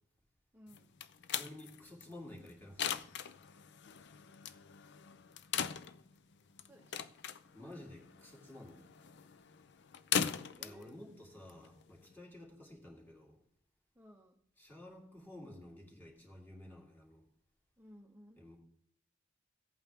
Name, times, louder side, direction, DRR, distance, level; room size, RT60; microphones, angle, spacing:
voice 1, 0.5-0.9 6.7-7.0 7.6-7.7 10.5-11.0 14.0-14.4 17.8-18.4, equal, 10° right, 0 dB, 0.8 m, -58 dB
sound 1, 0.7-12.1, left 8 dB, 60° left, 0.5 m, -41 dB
voice 2, 1.3-3.1 7.4-8.9 10.6-13.4 14.6-17.2 18.4-18.6, left 1 dB, 10° left, -2 dB, 2.6 m, -52 dB
14.5 x 8.6 x 3.6 m, 0.71 s
head